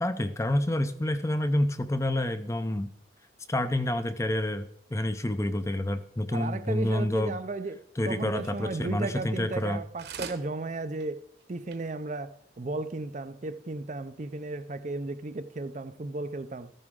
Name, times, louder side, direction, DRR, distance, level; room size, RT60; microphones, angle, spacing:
voice 1, 0.0-2.9 3.5-7.4 8.0-9.8, left 1 dB, 15° left, 0.5 m, -28 dB
voice 2, 6.3-16.7, right 2 dB, 40° right, 0.5 m, -35 dB
sound 1, 9.6-9.7 10.0-10.4 11.0-11.1 11.4-11.5 11.7-11.8 12.4-12.5, right 6 dB, 60° right, 1.1 m, -40 dB
14.0 x 11.0 x 3.7 m
head